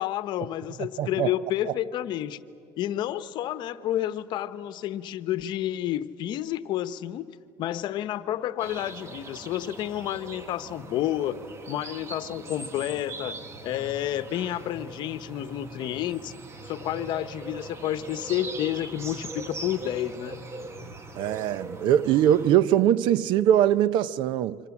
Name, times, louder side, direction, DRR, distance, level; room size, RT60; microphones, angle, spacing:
voice 1, 0.0-2.4 2.8-7.3 7.6-13.4 13.6-16.3 16.7-20.4, left 12 dB, 60° left, 1.0 m, -30 dB
voice 2, 1.0-1.3 21.2-24.6, right 10 dB, 70° right, 0.7 m, -22 dB
sound 1, 8.6-22.5, right 2 dB, 30° right, 1.7 m, -41 dB
26.0 x 25.5 x 7.3 m
cardioid pair, 125°, 9 cm